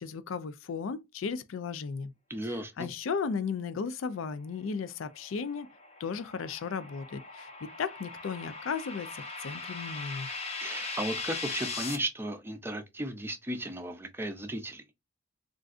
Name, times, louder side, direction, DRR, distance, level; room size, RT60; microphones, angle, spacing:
voice 1, 0.0-2.1 2.8-5.7 6.0-10.3, left 5 dB, 80° left, 0.4 m, -35 dB
voice 2, 2.3-2.9 10.6-14.8, right 1 dB, 10° right, 0.5 m, -35 dB
sound 1, 5.1-12.0, left 3 dB, 35° left, 0.8 m, -39 dB
3.5 x 2.5 x 2.4 m
head